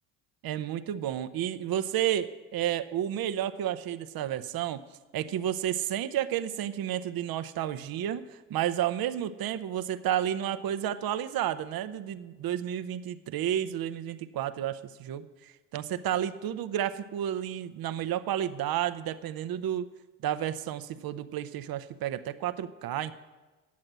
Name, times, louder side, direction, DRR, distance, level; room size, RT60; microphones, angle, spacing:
voice 1, 0.4-4.8 5.1-19.9 20.2-23.1, right 11 dB, 50° right, 11 dB, 0.7 m, -31 dB
9.5 x 7.6 x 7.4 m, 1.2 s
hypercardioid pair, 55°, 47 cm